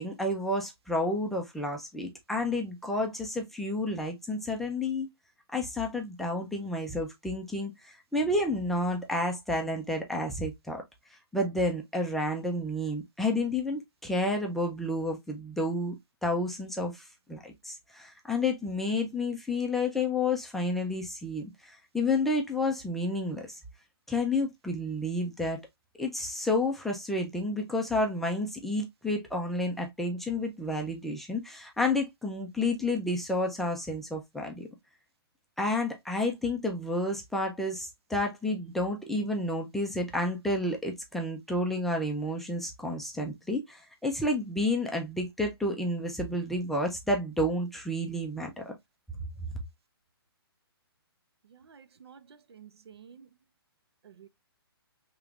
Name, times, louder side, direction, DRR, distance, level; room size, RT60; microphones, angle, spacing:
voice 1, 0.0-5.1 5.5-10.8 11.3-16.0 16.2-23.6 24.1-25.6 26.0-34.7 35.6-48.7, left 1 dB, ahead, 0.4 m, -30 dB
voice 2, 51.5-53.3 54.0-54.3, right 7 dB, 80° right, 0.6 m, -52 dB
4.9 x 2.9 x 2.3 m
hypercardioid pair, 160°, 13 cm